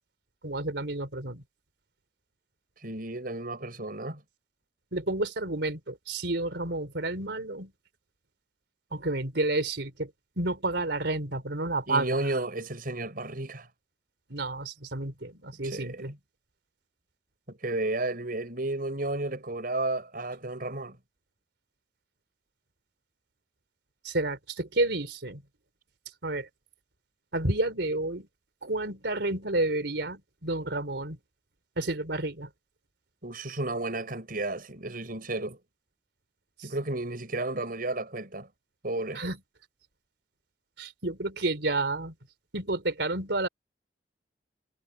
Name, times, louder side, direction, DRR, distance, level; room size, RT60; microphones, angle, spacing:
voice 1, 0.4-1.4 4.9-7.7 8.9-12.2 14.3-16.1 24.0-25.4 26.2-26.5 27.3-28.3 28.6-31.2 31.8-32.5 36.6-36.7 39.1-39.4 40.8-42.1 42.5-43.5, right 2 dB, 70° right, 4.0 m, -30 dB
voice 2, 2.8-4.2 11.9-13.7 15.6-16.0 17.5-21.0 33.2-35.6 36.6-38.5 38.8-39.2, right 2 dB, 55° right, 6.6 m, -32 dB
head